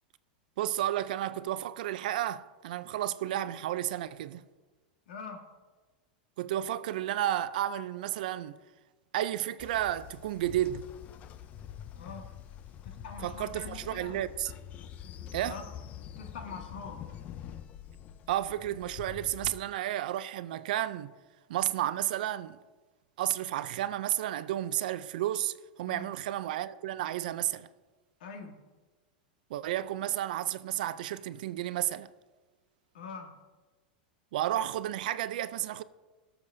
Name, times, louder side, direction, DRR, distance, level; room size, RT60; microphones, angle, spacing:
voice 1, 0.6-4.4 6.4-8.6 9.1-10.9 13.2-14.5 15.3-15.6 18.3-21.1 21.5-22.6 23.2-27.7 29.5-32.1 34.3-35.8, right 13 dB, 70° right, 0.4 m, -32 dB
voice 2, 5.1-5.5 12.0-12.3 12.8-14.2 15.5-15.6 16.2-17.1 25.9-26.1 28.2-28.6 32.9-33.4, left 5 dB, 90° left, 1.7 m, -44 dB
Train, 9.6-19.6, left 10 dB, 30° left, 0.4 m, -45 dB
17.5 x 7.1 x 2.7 m
supercardioid pair, 145°, 5 cm